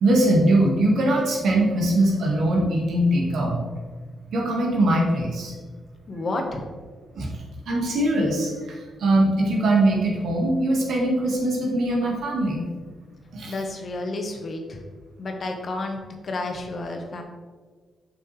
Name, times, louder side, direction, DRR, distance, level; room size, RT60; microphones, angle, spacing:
voice 1, 0.0-3.6 4.3-5.5 7.1-7.3 7.7-12.7 13.3-13.6, right 1 dB, 75° right, -1 dB, 1.6 m, -21 dB
voice 2, 6.1-6.7 13.4-14.8 15.2-17.2, left 2 dB, 55° left, 3 dB, 1.1 m, -31 dB
7.2 x 5.4 x 3.2 m, 1.5 s
cardioid pair, 65°, 0 cm